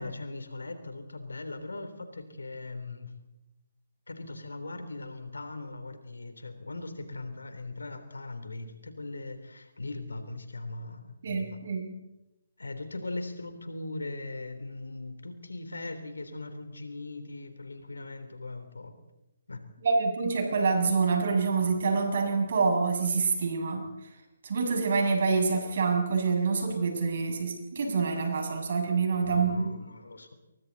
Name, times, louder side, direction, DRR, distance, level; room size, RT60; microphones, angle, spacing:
voice 1, 0.0-3.1 4.1-11.6 12.6-18.9 19.5-19.6 29.2-30.3, left 2 dB, 75° left, 8 dB, 3.5 m, -39 dB
voice 2, 11.2-12.0 19.8-23.9 24.4-29.7, right 4 dB, 50° right, 2 dB, 7.1 m, -26 dB
30.0 x 23.0 x 4.2 m, 0.98 s
figure-of-eight pair, 140°, 0 cm